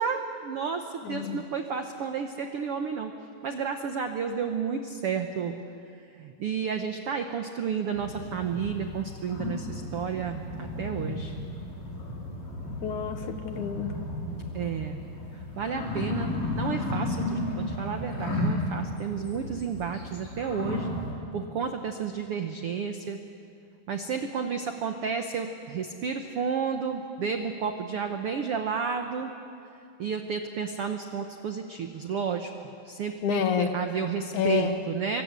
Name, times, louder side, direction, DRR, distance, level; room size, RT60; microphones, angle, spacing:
voice 1, 0.0-3.1 3.4-5.6 6.2-11.3 14.5-15.0 15.6-20.9 21.3-23.2 23.9-29.3 30.0-35.2, right 6 dB, 85° right, 5 dB, 1.2 m, -31 dB
voice 2, 1.0-1.4 12.8-13.9 33.2-33.7 34.3-34.8, left 8 dB, 65° left, 7 dB, 2.3 m, -28 dB
sound 1, 7.9-21.1, left 1 dB, 50° left, 6.0 m, -34 dB
26.5 x 24.0 x 8.3 m, 2.6 s
omnidirectional pair, 4.3 m